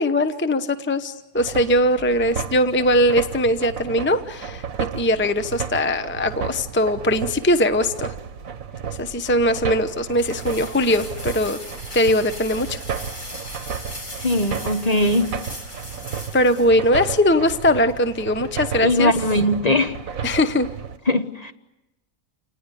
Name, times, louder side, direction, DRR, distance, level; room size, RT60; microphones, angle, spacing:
voice 1, 0.0-4.6 4.9-8.1 9.0-11.6 11.9-12.8 16.3-19.1 20.2-20.7, left 1 dB, 10° left, 0.8 m, -20 dB
sound 1, 1.4-21.0, right 7 dB, 80° right, 1.6 m, -33 dB
sound 2, 9.3-17.1, left 1 dB, 70° left, 5.2 m, -39 dB
voice 2, 14.2-15.3 18.8-20.0 21.1-21.5, left 1 dB, 30° left, 1.1 m, -20 dB
28.5 x 19.5 x 9.9 m
omnidirectional pair, 1.4 m